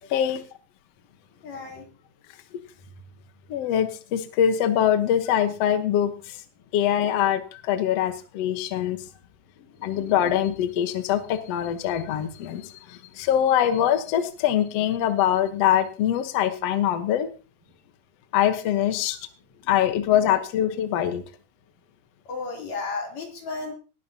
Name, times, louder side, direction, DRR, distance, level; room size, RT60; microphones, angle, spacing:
voice 1, 0.1-0.4 3.5-6.1 6.7-9.0 9.8-17.3 18.3-19.2 19.7-21.2, left 10 dB, 65° left, 9 dB, 1.7 m, -23 dB
voice 2, 1.4-1.9 9.6-9.9 19.6-19.7 22.3-23.7, left 4 dB, 50° left, 0 dB, 4.5 m, -34 dB
19.0 x 11.5 x 2.9 m, 0.35 s
omnidirectional pair, 4.3 m